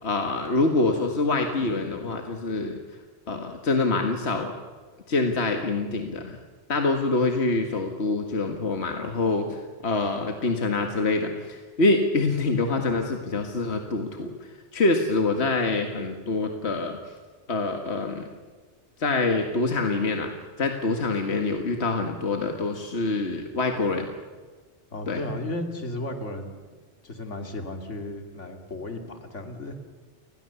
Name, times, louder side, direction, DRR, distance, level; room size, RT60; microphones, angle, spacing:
voice 1, 0.0-2.8 3.3-4.5 5.1-6.4 6.7-9.5 9.8-14.3 14.7-17.0 17.5-18.2 19.0-20.3 20.6-24.1 25.1-25.2, left 3 dB, 65° left, 4 dB, 2.0 m, -25 dB
voice 2, 24.9-26.6 27.0-29.8, left 1 dB, 80° left, 5 dB, 2.9 m, -34 dB
29.5 x 20.0 x 7.0 m, 1.4 s
omnidirectional pair, 1.2 m